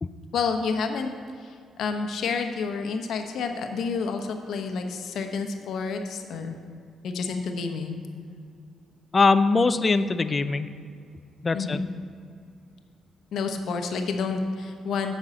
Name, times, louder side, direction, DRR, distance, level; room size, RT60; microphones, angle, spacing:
voice 1, 0.3-1.1 1.4-6.6 7.0-8.0 11.5-11.9 13.3-15.2, left 5 dB, 70° left, 5 dB, 0.9 m, -29 dB
voice 2, 9.1-10.7 11.4-11.8, left 4 dB, 35° left, 13 dB, 0.4 m, -22 dB
7.5 x 5.5 x 7.6 m, 2.3 s
supercardioid pair, 70°, 0 cm